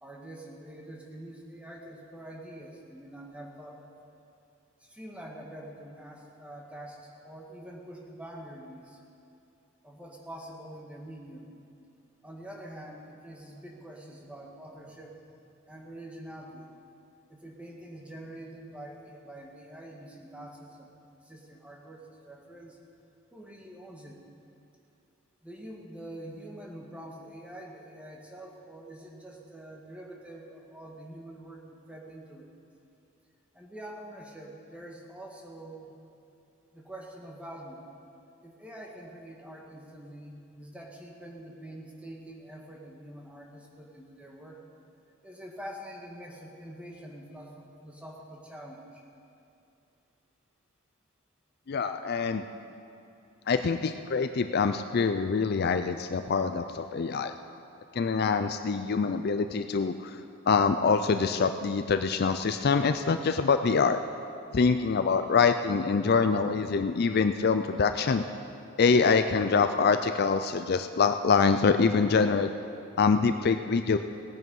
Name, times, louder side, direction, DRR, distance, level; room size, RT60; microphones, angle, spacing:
voice 1, 0.0-3.9 4.8-9.0 9.8-11.5 12.2-15.3 15.7-16.7 17.3-22.8 23.3-24.2 25.4-32.5 33.5-35.9 36.7-37.8 38.4-44.6 45.2-49.0, right 1 dB, 5° right, -1 dB, 1.6 m, -45 dB
voice 2, 51.7-52.4 53.5-57.3 57.9-60.2 60.5-64.0 64.5-68.2 68.8-72.5 73.0-74.0, left 5 dB, 50° left, 9 dB, 0.4 m, -25 dB
18.0 x 9.3 x 5.4 m, 2.6 s
head